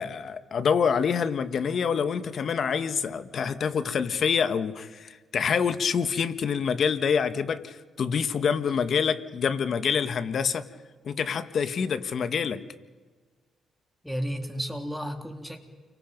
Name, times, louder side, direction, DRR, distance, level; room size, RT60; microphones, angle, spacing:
voice 1, 0.0-10.7 11.0-12.6, left 6 dB, 55° left, 1.4 m, -26 dB
voice 2, 14.0-15.6, equal, ahead, 3.0 m, -33 dB
29.5 x 24.0 x 5.3 m
cardioid pair, 90°, 0 cm